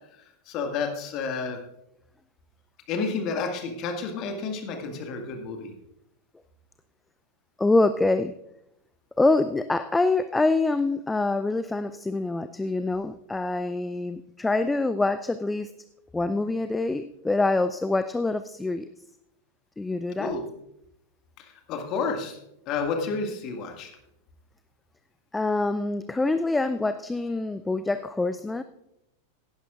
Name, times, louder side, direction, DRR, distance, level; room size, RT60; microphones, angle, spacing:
voice 1, 0.5-1.6 2.9-5.7 20.2-20.4 21.4-22.4 22.7-23.9, left 4 dB, 40° left, 4 dB, 1.8 m, -30 dB
voice 2, 7.6-8.3 9.2-15.7 16.1-18.9 19.8-20.4 25.3-28.6, left 2 dB, 10° left, 13 dB, 0.4 m, -25 dB
17.0 x 11.0 x 2.4 m, 0.83 s
figure-of-eight pair, 90°, 0 cm